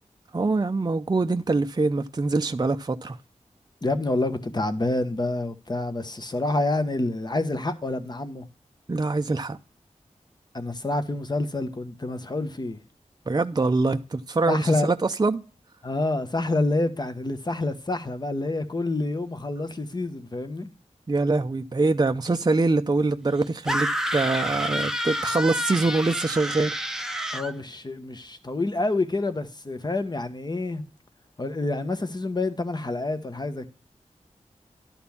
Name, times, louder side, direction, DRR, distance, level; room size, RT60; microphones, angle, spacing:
voice 1, 0.3-3.2 8.9-9.6 13.3-15.4 21.1-26.7, right 3 dB, 35° right, 0.6 m, -24 dB
voice 2, 3.8-8.5 10.5-12.8 14.5-14.9 15.8-20.7 27.3-30.8 31.4-33.7, left 2 dB, 35° left, 1.2 m, -27 dB
sound 1, 23.7-27.5, equal, 5° right, 0.8 m, -28 dB
12.0 x 4.3 x 7.1 m
wide cardioid pair, 60°, 13 cm